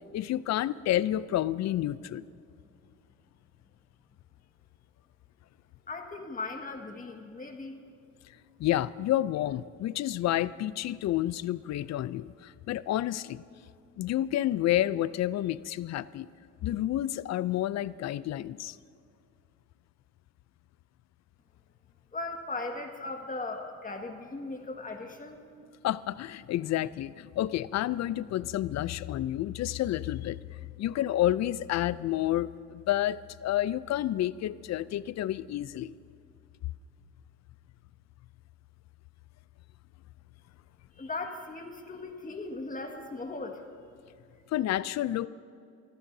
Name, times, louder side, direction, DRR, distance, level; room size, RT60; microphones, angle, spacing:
voice 1, 0.1-2.2 8.6-13.4 14.0-16.3 16.6-18.8 25.8-30.4 30.8-35.9 44.5-45.3, left 13 dB, 60° left, 18 dB, 0.5 m, -30 dB
voice 2, 5.9-7.8 22.1-25.4 41.0-43.6, left 3 dB, 25° left, 3 dB, 1.8 m, -38 dB
24.5 x 14.0 x 2.7 m, 2.5 s
cardioid pair, 90°, 30 cm